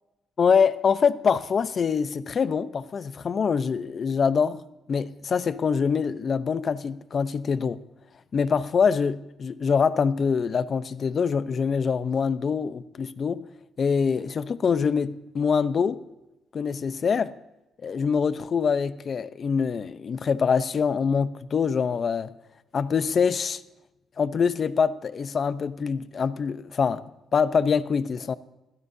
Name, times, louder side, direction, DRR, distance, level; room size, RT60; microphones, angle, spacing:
voice 1, 0.4-4.6 4.9-7.8 8.3-13.5 13.8-16.1 16.5-17.3 17.8-22.3 22.7-23.6 24.2-27.0 27.3-28.3, left 6 dB, 45° left, 0.8 m, -24 dB
26.5 x 16.5 x 2.8 m
cardioid pair, 90°, 0 cm